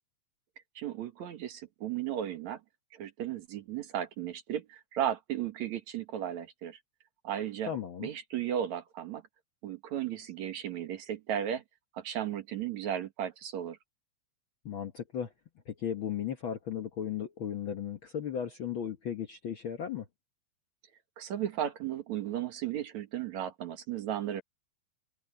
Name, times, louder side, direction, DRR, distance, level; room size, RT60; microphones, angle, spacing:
voice 1, 0.8-2.6 2.9-6.8 7.2-7.7 8.0-9.2 9.6-11.6 11.9-13.8 21.2-24.4, right 10 dB, 65° right, 2.7 m, -35 dB
voice 2, 7.7-8.1 14.6-15.3 15.7-20.1, left 8 dB, 60° left, 1.4 m, -36 dB
omnidirectional pair, 3.6 m